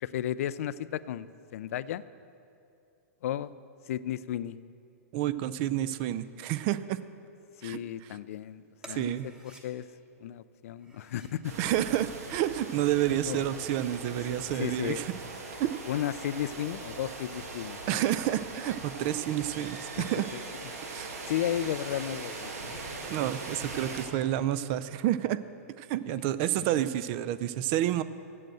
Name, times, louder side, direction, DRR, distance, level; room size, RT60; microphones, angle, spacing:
voice 1, 0.0-1.3 1.5-2.0 3.2-3.5 3.9-4.6 7.6-9.1 9.6-9.8 10.2-11.5 13.3-13.4 14.3-15.0 15.9-18.0 20.0-20.1 21.3-22.8, left 11 dB, 65° left, 17 dB, 0.3 m, -34 dB
voice 2, 5.1-7.0 7.6-8.2 8.9-9.3 11.6-15.1 15.6-15.7 17.9-20.3 20.9-21.1 23.1-25.4 25.8-28.0, right 12 dB, 45° right, 14 dB, 0.4 m, -29 dB
sound 1, 8.8-9.6 10.7-11.4 12.3-13.1 13.5-13.6 14.0-14.7, right 1 dB, 10° right, 1.0 m, -54 dB
sound 2, 11.4-24.1, right 3 dB, 80° right, 1.5 m, -41 dB
7.7 x 7.6 x 7.7 m, 2.6 s
hypercardioid pair, 130°, 8 cm